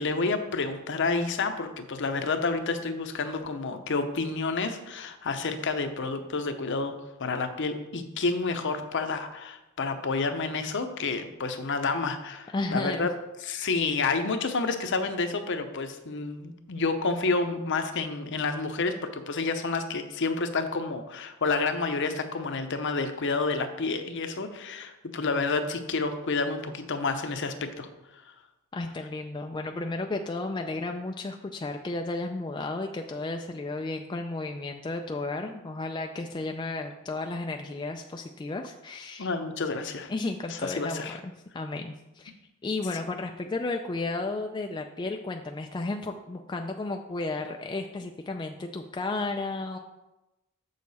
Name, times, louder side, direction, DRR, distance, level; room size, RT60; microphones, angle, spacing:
voice 1, 0.0-6.9 7.2-13.1 13.4-27.9 39.2-40.1 40.5-41.2, left 4 dB, 55° left, 8 dB, 0.7 m, -29 dB
voice 2, 12.5-13.1 28.7-39.3 40.1-42.3 42.6-49.8, left 2 dB, 20° left, 3 dB, 0.3 m, -33 dB
7.0 x 6.6 x 4.1 m, 0.99 s
head